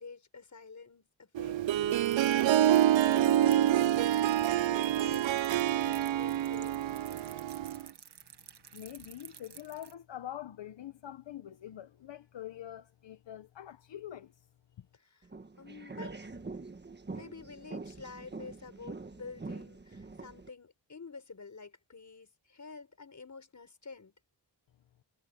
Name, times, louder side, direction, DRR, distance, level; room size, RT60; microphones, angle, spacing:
voice 1, 0.0-7.4 14.9-15.3 15.6-16.2 17.1-24.1, left 4 dB, 40° left, 5.5 m, -49 dB
Harp, 1.4-7.9, right 12 dB, 85° right, 0.6 m, -27 dB
sound 1, 1.9-9.9, right 8 dB, 65° right, 1.4 m, -53 dB
voice 2, 8.7-14.3 14.8-14.9, left 11 dB, 75° left, 1.0 m, -45 dB
sound 2, 15.2-20.5, right 3 dB, 25° right, 1.4 m, -44 dB
wide cardioid pair, 180°, 44 cm